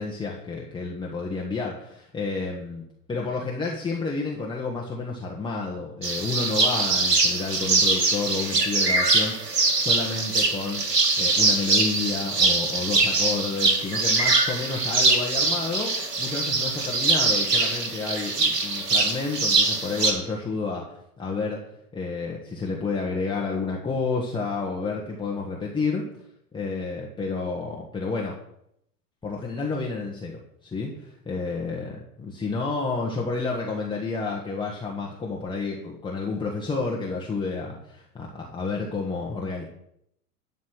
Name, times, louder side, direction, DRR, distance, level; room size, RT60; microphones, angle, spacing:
voice 1, 0.0-2.8 3.1-10.8 11.2-15.9 16.2-21.6 21.9-26.0 26.5-28.3 29.2-39.6, left 4 dB, 10° left, -3 dB, 1.3 m, -30 dB
sound 1, 6.0-20.1, right 3 dB, 90° right, 2.1 m, -23 dB
11.5 x 4.2 x 8.0 m, 0.75 s
hypercardioid pair, 110°, 47 cm